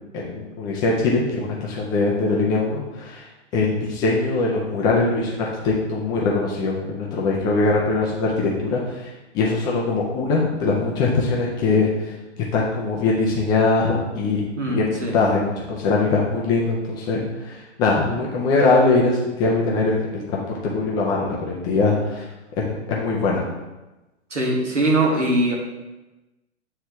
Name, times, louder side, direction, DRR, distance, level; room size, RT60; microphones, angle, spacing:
voice 1, 0.1-3.3 3.5-12.1 12.5-20.2 20.6-22.2 22.6-23.4, left 3 dB, 10° left, -3 dB, 0.3 m, -22 dB
voice 2, 14.6-15.2 24.3-25.5, right 1 dB, 85° right, 0 dB, 1.5 m, -21 dB
8.7 x 3.2 x 3.4 m, 1.1 s
figure-of-eight pair, 110°, 35 cm